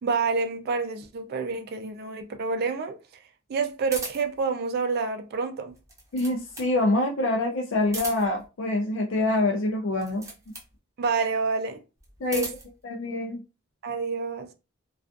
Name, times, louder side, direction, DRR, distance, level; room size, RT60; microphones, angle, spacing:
voice 1, 0.0-3.0 3.5-5.7 11.0-11.8 12.3-12.5 13.8-14.5, right 4 dB, 50° right, 0.4 m, -28 dB
sound 1, 3.9-4.4 5.7-6.8 7.8-8.5 9.9-10.7 12.0-12.7, right 2 dB, 15° right, 0.7 m, -37 dB
voice 2, 6.1-10.3 12.2-12.5 12.8-13.4, left 2 dB, 65° left, 0.4 m, -25 dB
2.4 x 2.3 x 2.4 m
head